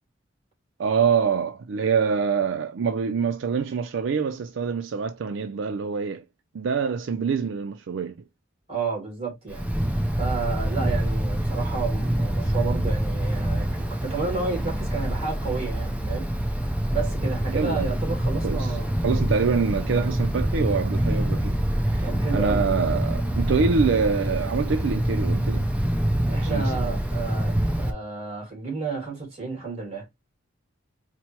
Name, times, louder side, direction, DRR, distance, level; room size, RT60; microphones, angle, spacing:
voice 1, 0.8-6.2 6.5-8.2 17.5-17.9 18.4-18.8 19.0-25.7 26.4-26.6, right 5 dB, 70° right, 0.4 m, -25 dB
voice 2, 8.7-9.7 10.2-16.3 16.9-18.9 22.0-22.6 26.3-30.0, right 4 dB, 30° right, 2.5 m, -31 dB
Wind, 9.5-27.9, right 1 dB, 5° right, 0.4 m, -25 dB
4.3 x 2.0 x 4.5 m
head